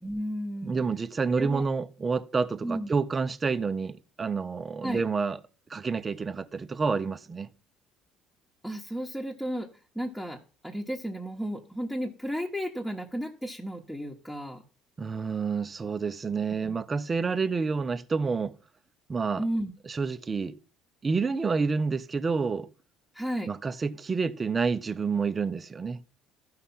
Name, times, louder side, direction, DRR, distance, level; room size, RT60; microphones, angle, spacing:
voice 1, 0.0-0.8 1.4-1.6 2.6-2.9 4.8-5.0 8.6-9.7 9.9-14.6 19.4-19.7 23.1-23.5, equal, 5° left, 1.3 m, -33 dB
voice 2, 0.6-5.4 5.7-7.5 15.0-18.6 19.1-19.4 19.9-20.5 21.0-22.7 23.5-26.0, right 4 dB, 30° right, 0.8 m, -29 dB
13.0 x 5.8 x 5.7 m
supercardioid pair, 95°, 0 cm